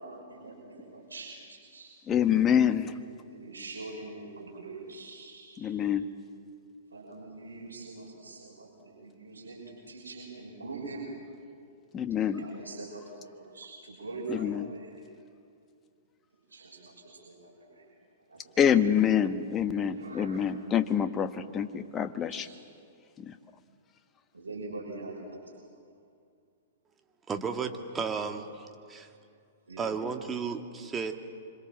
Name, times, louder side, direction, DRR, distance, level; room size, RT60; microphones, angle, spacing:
voice 1, 0.0-1.9 3.3-5.8 6.9-11.0 12.4-14.9 16.5-17.8 18.3-18.6 19.8-20.5 22.3-22.4 24.3-25.5 29.7-29.9, right 3 dB, 85° right, -1 dB, 6.1 m, -43 dB
voice 2, 2.1-3.0 5.6-6.1 11.9-12.5 14.3-14.7 18.6-22.5 23.2-23.3, left 9 dB, 25° left, 9 dB, 1.3 m, -26 dB
voice 3, 27.3-29.1 29.8-31.1, right 5 dB, 15° right, 5 dB, 2.0 m, -34 dB
26.5 x 25.5 x 7.6 m, 2.3 s
figure-of-eight pair, 110°, 0 cm